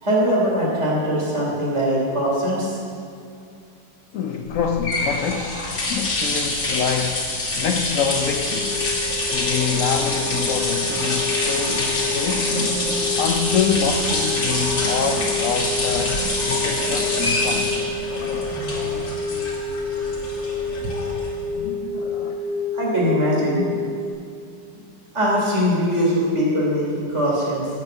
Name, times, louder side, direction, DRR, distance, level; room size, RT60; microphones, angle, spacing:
voice 1, 0.0-2.8 22.7-23.7 24.7-24.8 25.1-27.7, equal, 35° right, -5 dB, 3.7 m, -21 dB
voice 2, 4.1-8.8 9.3-12.6 13.2-17.7 21.5-22.4 23.7-24.0, left 7 dB, 70° left, 5 dB, 0.8 m, -26 dB
sound 1, 4.5-21.6, left 2 dB, 90° left, 3.2 m, -25 dB
sound 2, 8.2-24.1, left 3 dB, 65° right, 2.9 m, -29 dB
9.4 x 8.4 x 8.2 m, 2.3 s
omnidirectional pair, 2.0 m